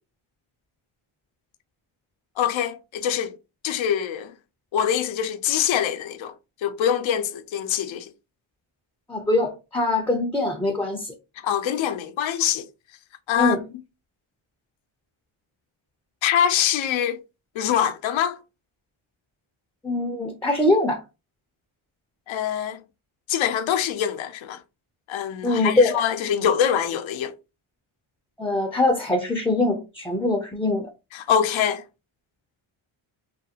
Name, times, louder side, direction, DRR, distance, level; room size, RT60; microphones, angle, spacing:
voice 1, 2.4-3.4 3.6-4.3 4.7-6.3 6.6-8.1 11.4-12.6 13.3-13.6 16.2-17.2 17.6-18.4 22.3-22.8 23.3-24.6 25.1-27.3 31.1-31.8, left 9 dB, 70° left, 0.6 m, -24 dB
voice 2, 9.1-11.1 13.4-13.6 19.8-21.0 25.4-26.0 28.4-30.9, left 2 dB, 5° left, 0.5 m, -22 dB
2.6 x 2.5 x 2.7 m
cardioid pair, 100°, 49 cm